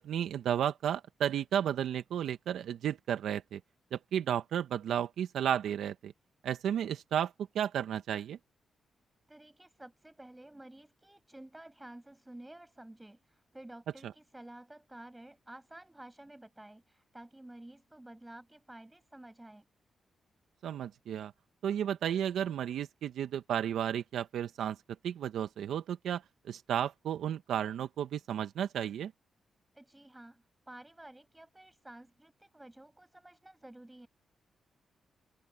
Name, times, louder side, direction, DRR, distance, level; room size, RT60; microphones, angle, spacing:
voice 1, 0.0-3.6 3.9-6.1 6.4-8.4 20.6-21.3 21.6-24.8 25.0-26.2 26.5-29.1, right 9 dB, 80° right, 1.2 m, -33 dB
voice 2, 9.3-19.7 29.7-34.1, right 1 dB, 15° right, 7.6 m, -52 dB
open air
supercardioid pair, 55°, 0 cm